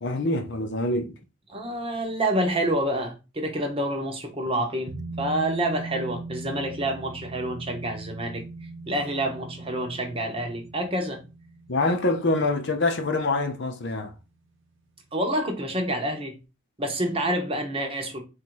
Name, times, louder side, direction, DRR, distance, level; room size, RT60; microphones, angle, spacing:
voice 1, 0.0-1.1 11.7-14.1, left 2 dB, 55° left, 0.6 m, -25 dB
voice 2, 1.5-8.4 8.8-11.2 15.1-16.4 16.8-18.2, right 1 dB, 25° right, 0.8 m, -28 dB
sound 1, 4.9-14.0 14.3-14.4, right 3 dB, 60° right, 0.6 m, -40 dB
4.1 x 2.6 x 4.5 m
head